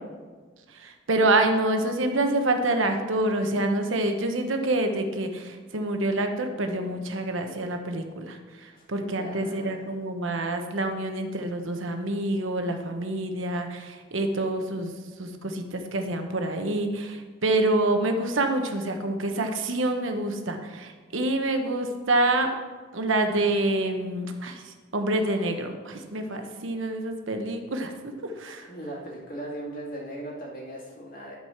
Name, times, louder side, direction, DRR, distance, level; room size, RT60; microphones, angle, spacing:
voice 1, 0.7-14.9 15.2-22.5 22.9-27.9 28.2-28.7, right 2 dB, 80° right, 5 dB, 1.0 m, -27 dB
voice 2, 9.2-9.8 28.7-31.4, right 1 dB, 45° left, -3 dB, 2.4 m, -38 dB
11.0 x 4.8 x 5.9 m, 1.4 s
head